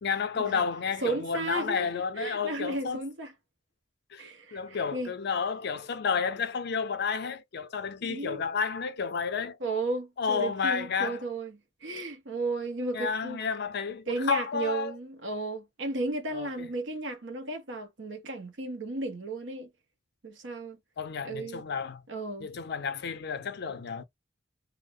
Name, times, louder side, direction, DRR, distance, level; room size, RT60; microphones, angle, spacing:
voice 1, 0.0-3.0 4.1-4.2 4.5-9.6 10.2-11.2 12.9-14.9 16.3-16.7 21.0-22.0 22.4-24.0, left 6 dB, 60° left, 0.5 m, -31 dB
voice 2, 1.0-3.3 4.2-5.1 8.0-8.4 9.6-13.4 14.1-19.7 20.2-20.8 21.2-21.6 22.1-22.5, right 2 dB, 70° right, 0.8 m, -34 dB
2.6 x 2.0 x 2.3 m
head